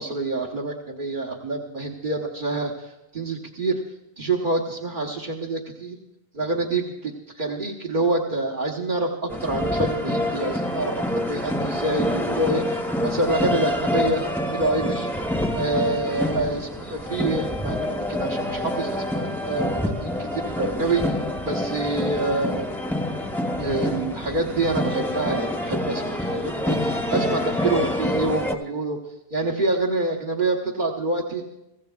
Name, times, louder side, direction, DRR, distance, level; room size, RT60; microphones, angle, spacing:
voice 1, 0.0-3.8 4.2-6.0 6.3-15.1 15.5-22.7 23.6-29.0 29.3-31.4, right 2 dB, 55° right, -1 dB, 1.3 m, -27 dB
sound 1, 9.3-28.5, left 1 dB, ahead, 0.9 m, -27 dB
24.0 x 15.0 x 2.3 m, 0.91 s
omnidirectional pair, 1.0 m